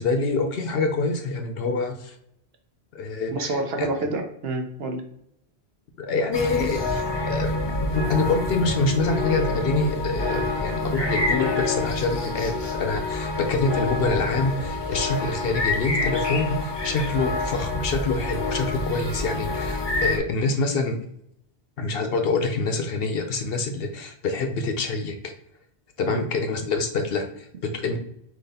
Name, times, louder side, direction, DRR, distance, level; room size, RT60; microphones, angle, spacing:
voice 1, 0.0-2.1 2.9-3.9 6.0-7.5 7.9-21.0 21.8-25.3 26.0-28.0, left 3 dB, 65° left, 6 dB, 0.8 m, -26 dB
voice 2, 3.3-5.0 26.1-26.2, right 2 dB, 65° right, 4 dB, 0.9 m, -28 dB
sound 1, 6.3-20.2, left 2 dB, 35° left, 0.4 m, -27 dB
4.0 x 2.9 x 4.0 m, 0.72 s
omnidirectional pair, 1.1 m